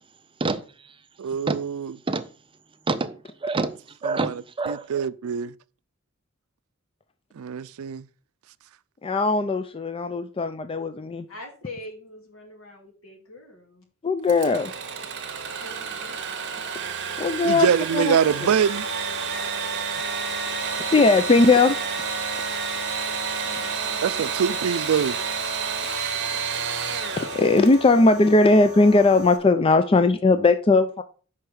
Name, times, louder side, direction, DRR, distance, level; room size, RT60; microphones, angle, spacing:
voice 1, 0.4-0.9 1.5-1.6 2.1-2.3 2.9-4.9, right 3 dB, 25° right, 0.5 m, -28 dB
voice 2, 1.2-1.9 4.1-4.3 4.7-5.5 7.4-8.0 17.4-18.9 24.0-25.2, right 7 dB, 85° right, 0.4 m, -24 dB
voice 3, 9.0-11.3 14.0-14.7 17.2-18.2 20.8-21.8 27.1-31.0, left 3 dB, 25° left, 0.4 m, -19 dB
voice 4, 11.3-13.9 15.6-16.4 23.4-24.2 29.9-30.0, left 2 dB, 75° left, 2.4 m, -43 dB
Engine / Sawing, 14.3-28.0, right 7 dB, 55° right, 1.0 m, -30 dB
sound 1, 18.2-29.4, left 3 dB, 90° left, 1.5 m, -37 dB
5.7 x 4.8 x 6.2 m
head